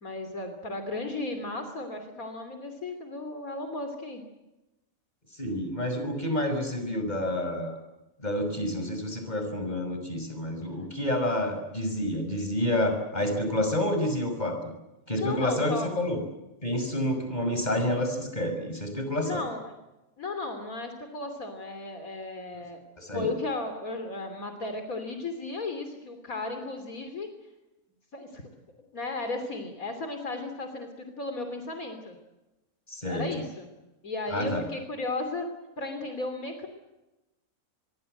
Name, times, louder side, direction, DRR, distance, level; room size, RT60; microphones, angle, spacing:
voice 1, 0.0-4.2 15.1-15.9 19.2-19.7 20.2-22.8 23.1-27.3 28.1-28.4 28.9-32.2 33.0-33.7 34.0-35.5 35.8-36.7, left 2 dB, 70° left, 6 dB, 3.5 m, -35 dB
voice 2, 5.4-7.8 8.2-14.6 15.1-16.2 16.6-19.4 23.0-23.3 32.9-33.2 34.3-34.6, left 1 dB, 30° left, 6 dB, 6.0 m, -29 dB
25.5 x 22.5 x 7.9 m, 1.0 s
omnidirectional pair, 1.5 m